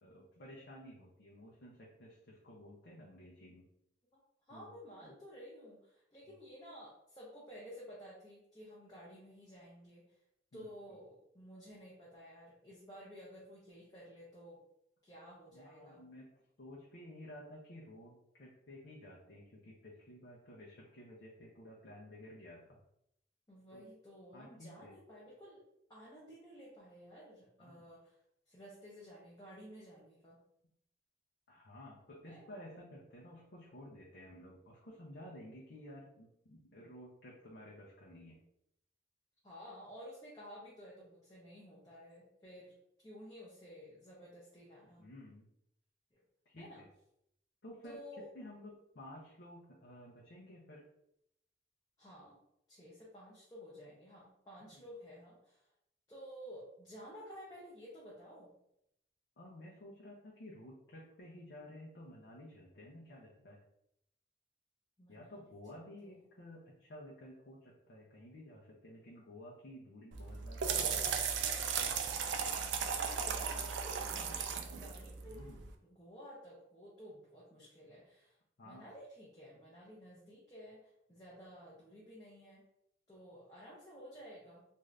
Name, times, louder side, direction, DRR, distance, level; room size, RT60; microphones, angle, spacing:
voice 1, 0.0-3.7 4.5-4.7 5.0-5.2 10.5-10.7 15.5-16.3 16.6-22.8 23.7-23.8 24.3-25.0 27.6-27.9 31.5-38.4 45.0-45.5 46.5-46.9 47.6-48.0 48.3-50.8 54.7-54.8 59.4-63.6 65.1-71.1 75.3-75.7 78.6-78.9, left 1 dB, 75° left, -4 dB, 0.6 m, -53 dB
voice 2, 4.5-10.1 10.5-14.6 15.0-16.0 23.5-25.6 25.9-28.2 28.5-30.4 32.3-32.5 39.4-42.8 43.0-45.0 46.1-46.2 46.6-46.8 47.8-48.3 52.0-52.4 52.7-55.7 56.1-58.6 65.0-65.4 65.7-66.3 72.2-75.5 75.8-78.4 78.6-82.6 83.1-84.7, equal, 20° left, -7 dB, 0.6 m, -53 dB
sound 1, 70.1-75.7, right 6 dB, 90° right, 0.4 m, -36 dB
2.6 x 2.4 x 3.2 m, 0.77 s
head